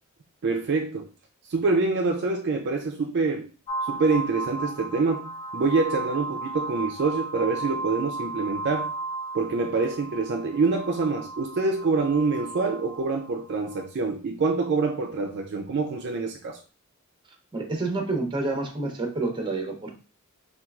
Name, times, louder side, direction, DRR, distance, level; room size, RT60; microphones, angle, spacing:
voice 1, 0.4-1.1 1.5-3.5 3.8-8.9 9.3-16.6, right 4 dB, 55° right, 0.4 m, -26 dB
sound 1, 3.7-13.8, right 2 dB, 30° left, 0.4 m, -35 dB
voice 2, 17.5-19.9, right 3 dB, 20° right, 0.7 m, -28 dB
4.3 x 2.3 x 2.3 m
head